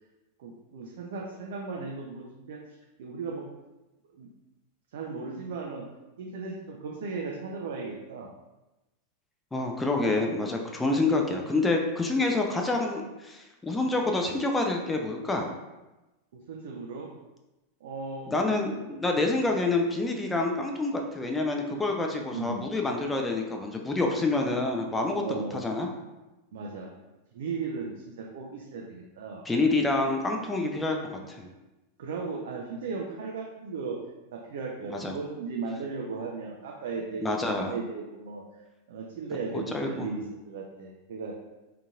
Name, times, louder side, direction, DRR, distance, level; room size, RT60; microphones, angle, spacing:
voice 1, 0.4-2.6 3.0-3.4 4.2-4.3 4.9-5.8 6.2-8.3 16.3-17.1 17.8-18.6 22.2-22.7 25.1-25.6 26.5-26.9 27.3-29.4 30.0-30.1 32.0-34.0 34.3-41.3, right 4 dB, 55° right, -2 dB, 0.4 m, -36 dB
voice 2, 9.5-15.5 18.3-25.9 29.5-31.5 35.0-35.1 37.2-37.7 39.5-40.0, left 2 dB, 10° left, 2 dB, 0.4 m, -27 dB
3.7 x 2.8 x 2.3 m, 1.0 s
figure-of-eight pair, 90°, 0 cm